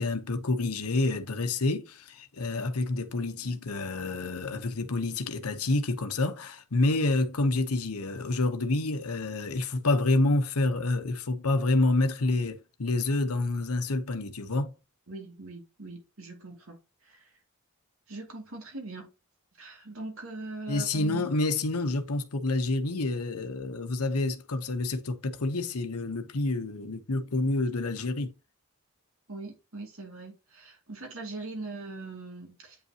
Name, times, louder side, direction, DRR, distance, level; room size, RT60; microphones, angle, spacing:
voice 1, 0.0-14.7 20.7-28.3, left 2 dB, 90° left, 1.0 m, -28 dB
voice 2, 15.1-16.8 17.0-17.3 18.1-19.1 19.6-21.3 29.3-32.8, right 2 dB, 70° right, 2.6 m, -41 dB
8.7 x 5.5 x 2.9 m
head